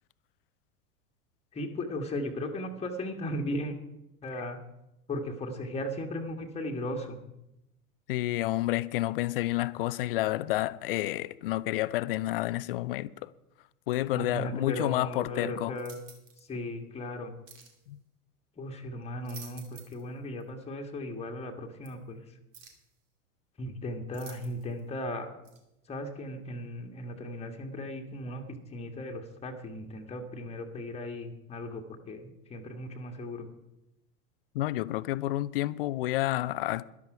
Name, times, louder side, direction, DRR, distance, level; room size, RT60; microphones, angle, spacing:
voice 1, 1.5-3.8 4.2-4.6 5.1-7.2 14.1-16.0 16.5-17.3 18.6-22.2 23.6-25.3 25.9-33.5, left 1 dB, 15° left, 1.6 m, -36 dB
voice 2, 8.1-13.3 13.9-15.7 17.9-18.0 34.5-36.8, left 16 dB, 40° left, 0.5 m, -30 dB
sound 1, 15.7-16.5 17.5-17.8 19.0-20.1 20.4-20.5 21.8-21.9 22.5-22.9 24.1-24.8 25.4-25.6, right 6 dB, 50° right, 2.7 m, -51 dB
13.5 x 11.5 x 5.0 m
figure-of-eight pair, 90°, 46 cm